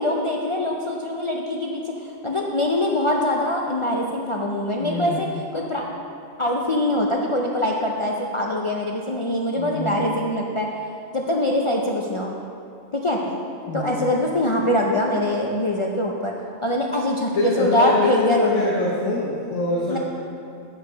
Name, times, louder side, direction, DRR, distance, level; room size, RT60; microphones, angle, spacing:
voice 1, 0.0-1.8 2.2-5.3 5.5-5.8 6.4-10.7 11.1-12.3 12.9-13.2 13.7-16.3 16.6-18.7 19.9-20.0, left 1 dB, 55° left, -1 dB, 0.3 m, -23 dB
voice 2, 4.8-5.3 9.5-10.0 13.7-14.2 17.3-20.0, left 2 dB, 70° left, -5 dB, 1.3 m, -24 dB
7.6 x 6.6 x 5.1 m, 2.7 s
omnidirectional pair, 1.4 m